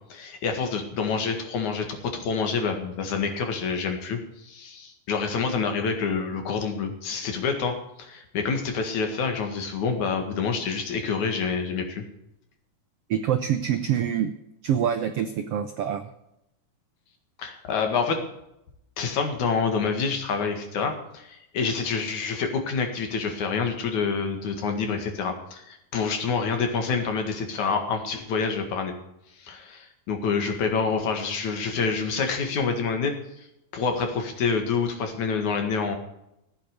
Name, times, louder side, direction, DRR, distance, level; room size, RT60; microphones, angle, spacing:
voice 1, 0.1-4.2 4.4-12.0 17.4-18.2 19.0-28.9 29.4-33.1 33.7-36.0, left 5 dB, 60° left, 5 dB, 3.1 m, -27 dB
voice 2, 13.1-14.3 14.6-16.1, right 9 dB, 85° right, 8 dB, 1.3 m, -25 dB
15.5 x 8.6 x 6.6 m, 0.82 s
omnidirectional pair, 3.9 m